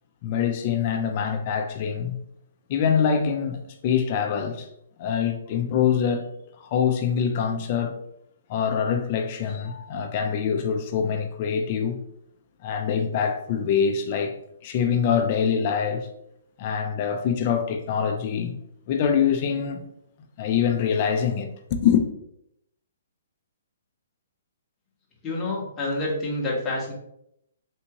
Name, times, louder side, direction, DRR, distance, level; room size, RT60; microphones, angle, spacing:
voice 1, 0.2-2.2 2.7-4.7 5.0-6.3 6.6-8.0 8.5-12.0 12.6-16.1 16.6-18.5 18.9-19.9 20.4-22.1, left 7 dB, 30° left, 0.4 m, -24 dB
voice 2, 25.2-26.9, left 2 dB, 15° left, 0.8 m, -28 dB
3.5 x 2.8 x 2.8 m
hypercardioid pair, 165°, 0 cm